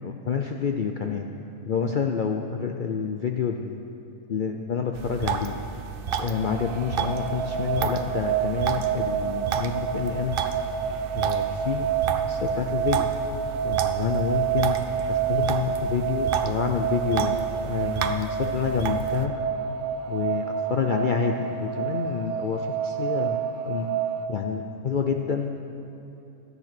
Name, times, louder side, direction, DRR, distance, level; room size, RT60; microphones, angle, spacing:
voice 1, 0.0-1.3 1.7-3.8 4.3-5.6 6.2-10.3 11.1-11.9 12.2-13.1 13.6-14.8 15.1-19.3 20.1-23.4 23.7-23.9 24.3-25.6, left 6 dB, 75° left, 4 dB, 0.4 m, -28 dB
sound 1, 4.9-19.3, right 6 dB, 60° right, 0.6 m, -32 dB
sound 2, 6.1-24.3, right 8 dB, 85° right, 1.1 m, -28 dB
13.5 x 9.4 x 5.9 m, 2.9 s
omnidirectional pair, 1.5 m